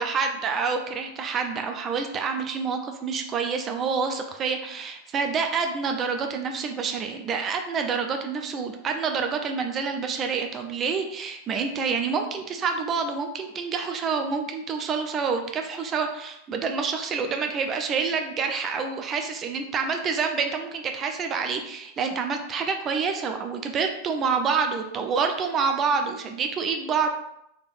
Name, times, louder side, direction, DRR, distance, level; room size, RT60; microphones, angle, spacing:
voice 1, 0.0-27.1, right 5 dB, 25° right, 5 dB, 0.4 m, -27 dB
3.7 x 3.3 x 2.5 m, 0.78 s
figure-of-eight pair, 90°, 0 cm